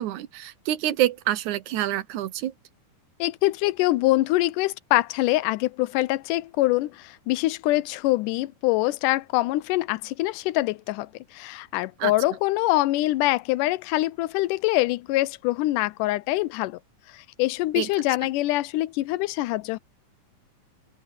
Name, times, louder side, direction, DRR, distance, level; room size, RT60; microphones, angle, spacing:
voice 1, 0.0-2.5 12.0-12.1 17.8-17.9, right 13 dB, 75° right, 2.2 m, -27 dB
voice 2, 3.2-16.8 17.1-19.8, left 18 dB, 90° left, 2.2 m, -24 dB
open air
omnidirectional pair, 3.6 m